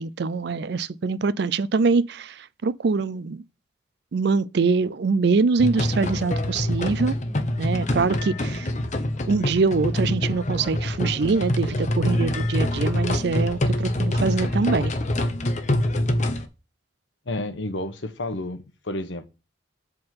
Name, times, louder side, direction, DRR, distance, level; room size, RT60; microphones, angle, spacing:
voice 1, 0.0-3.4 4.1-7.2 7.6-8.7 9.3-14.9, right 4 dB, 60° right, 0.4 m, -24 dB
sound 1, 5.6-16.5, left 1 dB, 40° left, 0.9 m, -25 dB
voice 2, 17.3-19.3, left 2 dB, 70° left, 1.1 m, -31 dB
7.8 x 3.8 x 5.8 m
head